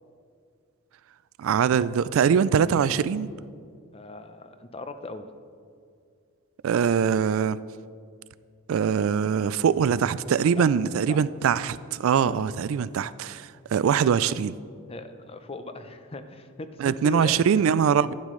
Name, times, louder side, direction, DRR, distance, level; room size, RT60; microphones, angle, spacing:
voice 1, 1.4-3.3 6.6-7.6 8.7-14.5 16.8-18.1, right 7 dB, 70° right, 0.3 m, -23 dB
voice 2, 3.9-5.3 10.6-10.7 11.1-11.2 12.2-12.5 14.9-17.4, left 2 dB, 25° left, 0.5 m, -38 dB
11.5 x 10.5 x 3.2 m
head